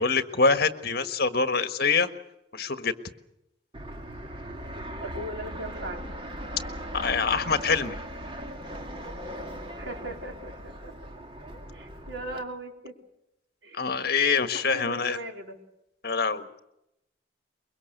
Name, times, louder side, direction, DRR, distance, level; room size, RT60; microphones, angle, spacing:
voice 1, 0.0-2.1 2.5-2.9 6.9-8.0 13.7-15.2 16.0-16.5, left 4 dB, 55° left, 9 dB, 1.5 m, -25 dB
Fixed-wing aircraft airplane, 3.7-12.4, equal, 30° right, 2.1 m, -39 dB
voice 2, 5.0-6.0 9.8-10.9 11.7-13.0 13.6-13.8 14.5-15.6, right 1 dB, 80° right, 2 dB, 4.2 m, -38 dB
24.0 x 23.0 x 6.7 m, 0.84 s
head